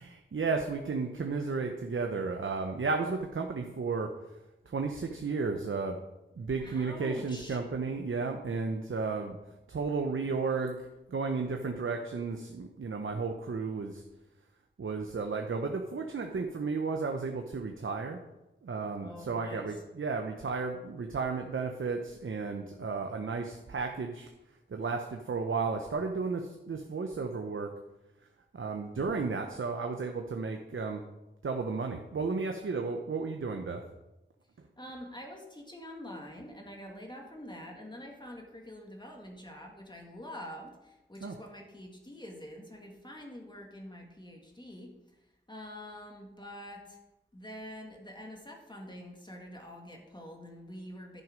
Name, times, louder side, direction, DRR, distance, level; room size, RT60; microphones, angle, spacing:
voice 1, 0.0-4.1 4.7-6.0 6.4-9.4 9.7-14.0 14.8-18.2 18.6-24.3 24.7-27.7 28.5-31.0 31.4-33.8 41.2-41.4, right 4 dB, 85° right, 4 dB, 0.8 m, -33 dB
voice 2, 6.6-7.6 19.0-19.7 34.8-44.9 45.5-47.0 47.3-51.2, equal, 20° left, 1 dB, 1.8 m, -46 dB
10.5 x 6.2 x 5.1 m, 1.0 s
wide cardioid pair, 60°, 20 cm